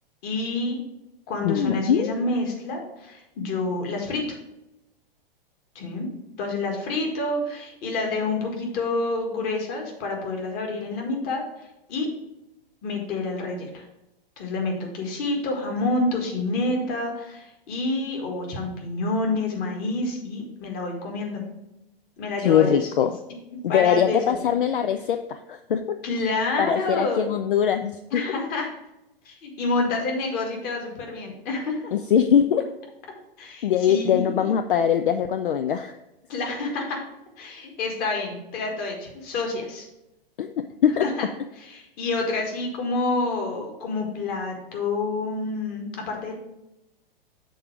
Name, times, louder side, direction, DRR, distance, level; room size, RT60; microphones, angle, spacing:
voice 1, 0.2-0.8 1.3-4.2 5.7-6.1 6.4-12.1 12.8-13.8 14.4-21.4 22.2-22.9 23.7-24.5 26.0-27.2 28.1-28.7 29.2-31.9 33.4-34.4 36.3-37.0 37.4-39.9 41.0-41.3 41.6-46.4, left 2 dB, 30° left, 1 dB, 1.6 m, -28 dB
voice 2, 1.4-2.1 22.4-23.1 23.6-26.0 26.6-28.0 31.9-32.6 33.6-35.9 40.4-40.5 40.8-41.0, left 8 dB, 60° left, 8 dB, 0.5 m, -22 dB
6.6 x 3.9 x 5.7 m, 0.93 s
figure-of-eight pair, 105°, 29 cm